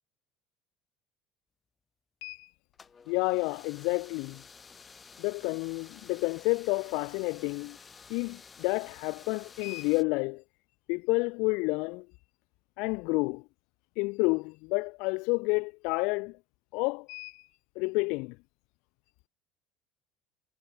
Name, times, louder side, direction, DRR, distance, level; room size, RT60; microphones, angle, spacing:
voice 1, 2.2-2.5 3.1-4.4 5.2-7.8 8.1-10.4 10.9-12.1 12.8-13.4 14.0-16.4 16.7-17.5 17.8-18.4, left 28 dB, 70° left, 1.8 m, -30 dB
sound 1, 2.7-10.0, left 5 dB, 25° left, 4.5 m, -52 dB
hypercardioid pair, 80°, 0 cm